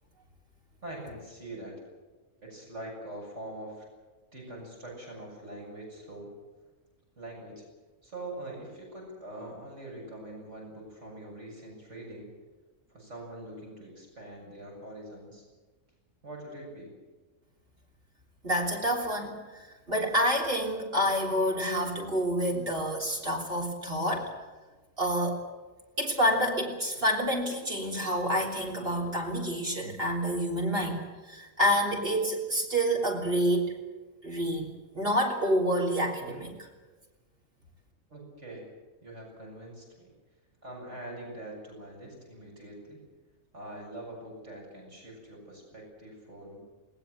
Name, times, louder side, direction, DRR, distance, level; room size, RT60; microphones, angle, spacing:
voice 1, 0.8-1.8 2.4-3.8 4.3-6.3 7.2-7.6 8.0-12.3 12.9-15.4 16.2-16.9 38.1-38.6 39.0-40.1 40.6-43.0 43.5-46.6, right 1 dB, 60° right, -2 dB, 7.6 m, -43 dB
voice 2, 18.4-19.6 19.9-24.3 25.0-25.4 26.0-31.0 31.2-33.7 34.2-36.5, equal, 45° right, 0 dB, 3.8 m, -28 dB
20.5 x 20.0 x 7.9 m, 1.3 s
omnidirectional pair, 1.4 m